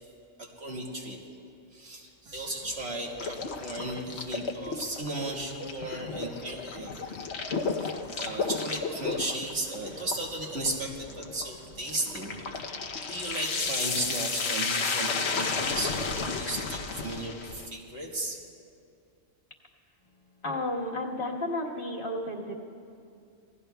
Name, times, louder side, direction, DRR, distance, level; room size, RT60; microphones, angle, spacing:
voice 1, 0.4-1.2 1.7-7.1 7.7-12.3 13.1-18.4, right 1 dB, 80° right, -2 dB, 2.1 m, -35 dB
sound 1, 2.3-14.7, right 1 dB, 55° right, 1.4 m, -56 dB
sound 2, 3.2-17.7, left 4 dB, 65° left, 1.1 m, -33 dB
voice 2, 20.4-22.5, left 1 dB, 50° left, -2 dB, 1.6 m, -32 dB
27.0 x 17.5 x 2.3 m, 2.4 s
omnidirectional pair, 1.2 m